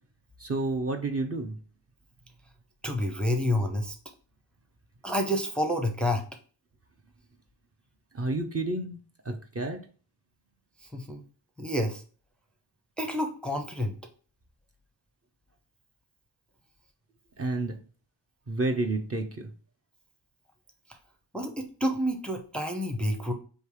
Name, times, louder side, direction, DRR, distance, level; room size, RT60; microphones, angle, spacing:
voice 1, 0.4-1.6 8.1-9.0 9.2-9.8 17.4-17.7 18.5-19.5, right 2 dB, 30° right, 4 dB, 0.6 m, -30 dB
voice 2, 2.8-4.0 5.0-6.3 10.9-11.2 11.6-12.0 13.0-13.9 21.3-23.3, left 1 dB, ahead, 4 dB, 0.6 m, -29 dB
3.3 x 2.7 x 4.6 m, 0.39 s
cardioid pair, 80°, 45 cm